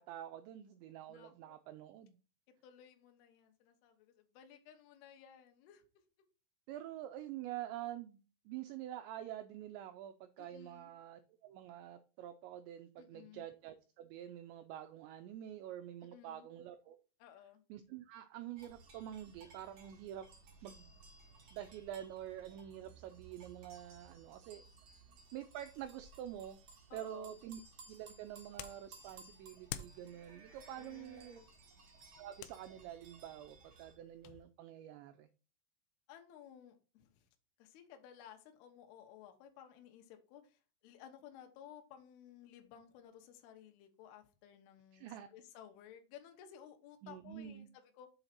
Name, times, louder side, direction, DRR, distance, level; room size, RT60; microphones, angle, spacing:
voice 1, 0.0-2.2 6.7-8.2 8.5-17.0 17.7-20.3 20.6-20.9 21.5-24.6 25.3-26.6 26.9-27.6 27.9-31.4 32.2-35.3 44.9-45.3 47.0-47.7, right 11 dB, 90° right, 8 dB, 2.5 m, -47 dB
voice 2, 1.1-1.6 2.6-5.8 10.4-10.9 13.0-13.5 16.1-16.5 17.2-17.6 25.0-25.2 26.9-27.4 30.8-31.5 36.1-37.3 37.6-48.1, left 9 dB, 70° left, 5 dB, 2.6 m, -57 dB
sound 1, 18.6-34.0, right 4 dB, 60° right, 1.6 m, -59 dB
sound 2, 27.7-34.4, left 12 dB, 85° left, 2.6 m, -53 dB
7.2 x 4.0 x 5.8 m, 0.34 s
omnidirectional pair, 5.7 m